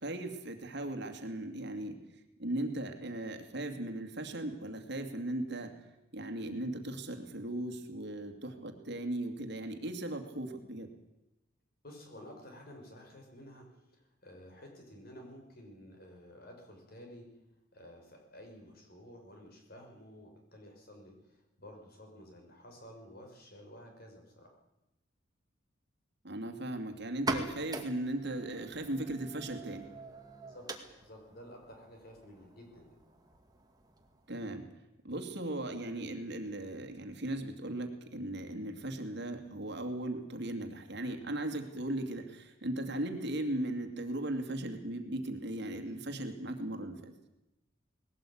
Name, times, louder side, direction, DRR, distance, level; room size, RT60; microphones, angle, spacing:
voice 1, 0.0-2.0 2.4-5.7 6.1-10.9 26.2-29.9 34.3-34.6 35.0-47.1, right 1 dB, 55° right, 6 dB, 2.4 m, -37 dB
voice 2, 11.8-17.3 17.7-24.6 30.5-30.7 31.0-32.9, equal, 50° left, 3 dB, 5.6 m, -52 dB
sound 1, 27.1-34.5, right 2 dB, 20° right, 2.2 m, -43 dB
20.0 x 17.5 x 8.7 m, 0.92 s
head